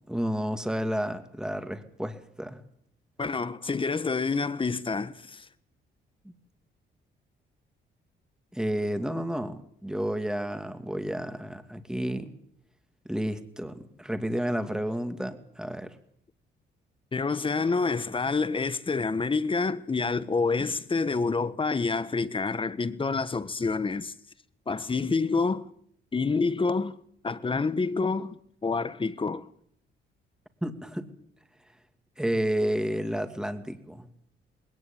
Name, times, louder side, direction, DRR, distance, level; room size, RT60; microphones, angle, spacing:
voice 1, 0.1-2.6 6.2-6.3 8.5-12.3 13.1-15.9 20.6-20.7 30.6-31.1 32.2-34.1, equal, 5° right, 2.5 m, -31 dB
voice 2, 3.2-5.5 17.1-24.1 24.7-25.7 26.1-27.0 27.2-29.5, left 4 dB, 25° left, 1.3 m, -28 dB
20.0 x 18.5 x 8.8 m
cardioid pair, 90°, 20 cm